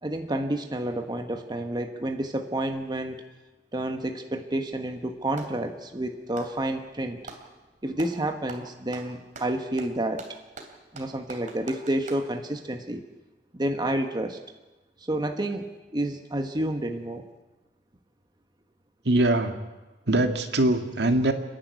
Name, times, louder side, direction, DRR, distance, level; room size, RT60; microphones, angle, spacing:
voice 1, 0.0-3.2 3.7-7.2 7.8-10.4 10.9-13.0 13.5-14.4 15.0-15.7 15.9-17.2, right 1 dB, 25° right, 5 dB, 1.2 m, -29 dB
Clapping, 4.7-5.6 6.2-7.5 8.0-8.2 8.5-12.3, right 3 dB, 45° right, 2.9 m, -44 dB
voice 2, 19.1-19.5 20.1-21.3, right 1 dB, 70° right, 6 dB, 1.9 m, -22 dB
30.0 x 10.5 x 9.5 m, 1.2 s
head